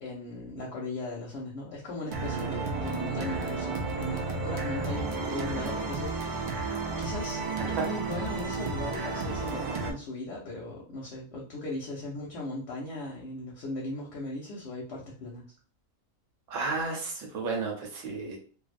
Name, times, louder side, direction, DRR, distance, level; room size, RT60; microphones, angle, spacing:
voice 1, 0.0-15.4, left 2 dB, 65° left, -2 dB, 0.8 m, -38 dB
sound 1, 2.1-9.9, right 4 dB, 90° right, 0.4 m, -32 dB
voice 2, 16.5-18.4, right 3 dB, 75° right, 1 dB, 1.0 m, -32 dB
2.5 x 2.0 x 2.4 m, 0.41 s
omnidirectional pair, 1.4 m